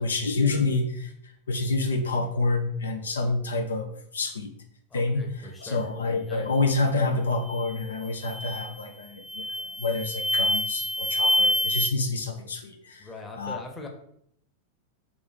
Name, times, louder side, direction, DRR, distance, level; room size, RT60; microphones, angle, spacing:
voice 1, 0.0-4.5 4.9-9.4 9.8-13.1 13.4-13.6, left 3 dB, 80° left, 5 dB, 0.5 m, -28 dB
voice 2, 4.9-5.8 6.3-6.5 13.0-13.9, left 2 dB, 15° left, 2 dB, 0.9 m, -41 dB
sound 1, 7.5-7.8 8.2-8.8 9.3-11.9, left 1 dB, 5° right, 0.3 m, -26 dB
3.6 x 3.0 x 3.9 m, 0.70 s
figure-of-eight pair, 90°, 0 cm